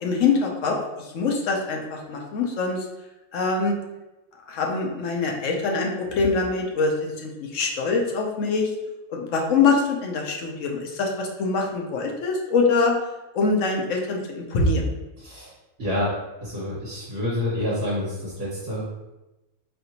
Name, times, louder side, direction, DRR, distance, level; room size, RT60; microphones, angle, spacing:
voice 1, 0.0-2.9 3.3-3.7 4.5-8.7 9.1-12.9 13.3-14.9, left 4 dB, 70° left, 1 dB, 1.0 m, -24 dB
voice 2, 15.2-15.5 15.8-16.1 16.4-18.8, left 1 dB, 45° right, -8 dB, 1.5 m, -28 dB
4.2 x 3.3 x 2.8 m, 1.0 s
omnidirectional pair, 1.4 m